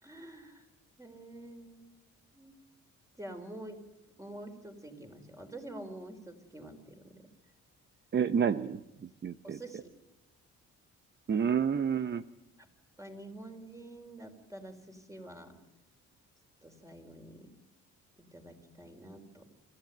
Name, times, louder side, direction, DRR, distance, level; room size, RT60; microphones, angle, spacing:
voice 1, 0.0-0.7 1.0-1.9 2.3-2.5 3.1-3.8 4.2-7.2 9.4-9.9 12.6-12.7 13.0-15.5 16.6-17.5 18.3-19.4, right 1 dB, 10° right, 5 dB, 4.1 m, -47 dB
voice 2, 8.1-9.6 11.3-12.2, right 7 dB, 35° right, 13 dB, 0.7 m, -29 dB
26.5 x 14.5 x 9.2 m, 0.99 s
cardioid pair, 90°, 30 cm